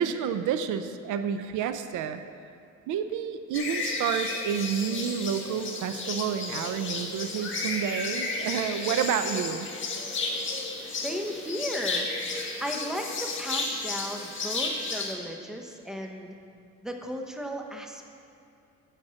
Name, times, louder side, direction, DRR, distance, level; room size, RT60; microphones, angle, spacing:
voice 1, 0.0-2.2 2.9-9.7, right 8 dB, 85° right, 10 dB, 0.6 m, -29 dB
sound 1, 3.5-15.1, left 3 dB, 40° left, 1.7 m, -33 dB
voice 2, 10.9-12.1 12.6-16.3 16.8-18.1, equal, ahead, 3 dB, 1.1 m, -35 dB
8.8 x 7.2 x 6.4 m, 2.6 s
cardioid pair, 90°, 30 cm